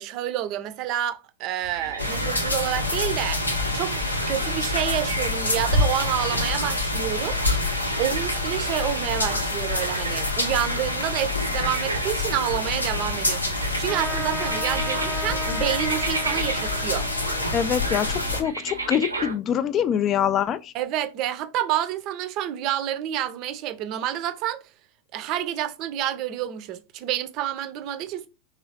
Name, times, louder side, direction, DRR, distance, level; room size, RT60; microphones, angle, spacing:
voice 1, 0.0-7.4 8.0-17.1 20.7-24.6 25.1-28.3, right 12 dB, 40° right, 0.5 m, -29 dB
sound 1, 1.6-19.4, right 3 dB, 85° right, 0.7 m, -35 dB
sound 2, 2.0-18.4, left 2 dB, 80° left, 0.7 m, -26 dB
Trumpet, 13.9-18.9, left 1 dB, ahead, 0.9 m, -36 dB
voice 2, 17.5-20.7, left 9 dB, 30° left, 0.3 m, -24 dB
3.7 x 3.0 x 2.8 m
figure-of-eight pair, 90°, 0 cm